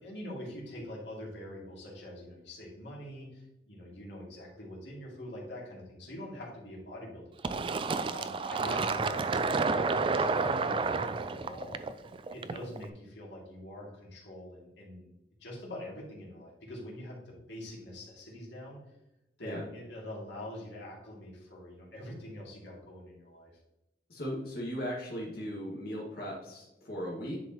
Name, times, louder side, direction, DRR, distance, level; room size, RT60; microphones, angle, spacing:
voice 1, 0.0-7.2 7.5-11.8 12.3-15.1 15.4-18.8 19.4-23.5, left 1 dB, 90° left, -3 dB, 2.5 m, -44 dB
Fill (with liquid), 7.4-12.8, right 4 dB, 30° right, 0.4 m, -30 dB
voice 2, 24.1-27.4, equal, 60° left, -5 dB, 1.8 m, -37 dB
10.0 x 4.7 x 3.0 m, 0.91 s
head